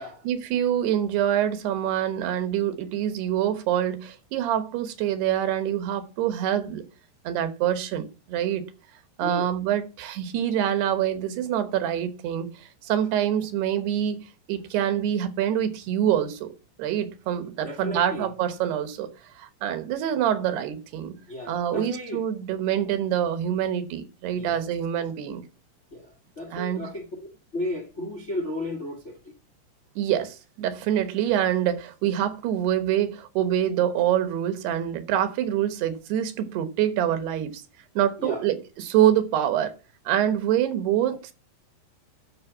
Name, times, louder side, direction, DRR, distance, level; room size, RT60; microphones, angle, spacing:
voice 1, 0.2-6.8 7.2-8.6 9.2-16.5 16.8-19.1 19.4-21.2 21.5-25.4 26.5-26.9 30.0-37.6 38.0-39.7 40.1-41.3, right 10 dB, 80° right, 3.3 m, -25 dB
voice 2, 17.6-18.3 21.3-22.2 24.3-24.7 25.9-27.1 27.5-29.3 38.2-38.4, left 1 dB, 35° left, 1.1 m, -34 dB
11.0 x 6.4 x 7.3 m
omnidirectional pair, 4.7 m